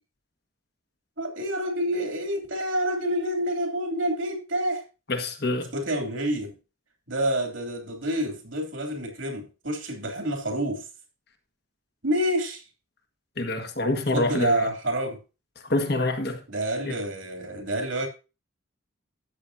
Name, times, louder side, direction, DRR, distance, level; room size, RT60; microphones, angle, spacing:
voice 1, 1.2-4.8 5.7-6.5 7.1-10.9 12.0-12.6 14.1-15.2 16.5-18.1, right 1 dB, 75° right, 2.9 m, -28 dB
voice 2, 5.1-5.7 13.4-14.7 15.7-16.4 16.9-17.0, left 2 dB, 50° left, 1.6 m, -26 dB
13.0 x 8.8 x 2.7 m
head